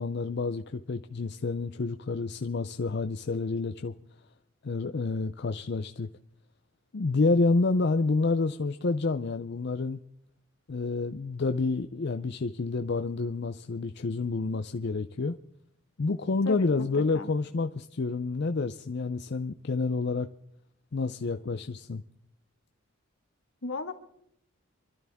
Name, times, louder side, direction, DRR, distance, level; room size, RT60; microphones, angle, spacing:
voice 1, 0.0-3.9 4.6-6.1 6.9-10.0 10.7-15.3 16.0-20.3 20.9-22.0, left 3 dB, 50° left, 0.5 m, -29 dB
voice 2, 16.5-17.3 23.6-23.9, left 3 dB, 75° left, 1.9 m, -36 dB
27.5 x 12.0 x 3.5 m
head